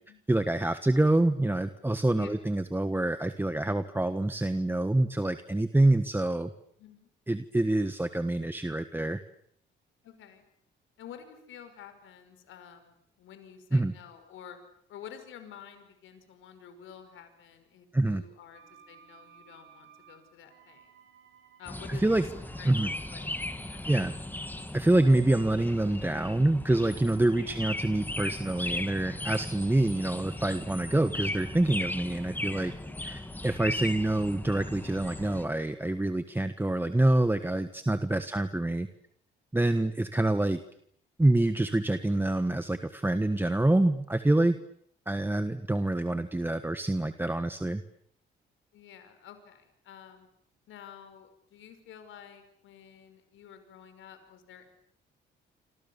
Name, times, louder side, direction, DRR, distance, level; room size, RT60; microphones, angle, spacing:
voice 1, 0.3-6.5 7.3-9.2 13.7-13.9 17.9-18.2 21.9-22.2 22.6-22.9 23.9-24.1 24.7-32.7 33.0-38.9 39.5-40.6 41.2-44.6 45.1-47.8, right 2 dB, 10° right, 10 dB, 1.4 m, -26 dB
voice 2, 6.8-7.1 10.0-10.5 11.0-14.6 14.9-20.9 21.6-23.9 32.9-33.0 43.2-43.4 48.7-50.3 50.7-54.7, left 8 dB, 80° left, 9 dB, 5.6 m, -50 dB
sound 1, 18.5-24.0, right 8 dB, 75° right, 5.7 m, -58 dB
sound 2, 21.7-35.5, left 1 dB, 10° left, 2.4 m, -37 dB
27.5 x 27.0 x 7.2 m, 0.66 s
cardioid pair, 90°, 20 cm